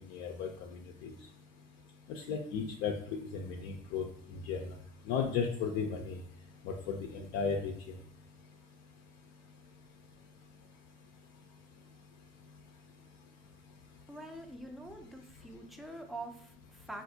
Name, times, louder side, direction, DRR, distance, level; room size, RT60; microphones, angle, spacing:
voice 1, 0.1-0.5 1.0-1.1 2.2-2.9 3.3-4.0 4.5-4.6 5.1-6.2 6.6-7.7, left 6 dB, 75° left, 1 dB, 0.5 m, -34 dB
voice 2, 14.1-17.0, right 2 dB, ahead, 3 dB, 0.5 m, -45 dB
3.5 x 2.5 x 2.7 m, 0.64 s
supercardioid pair, 90°, 20 cm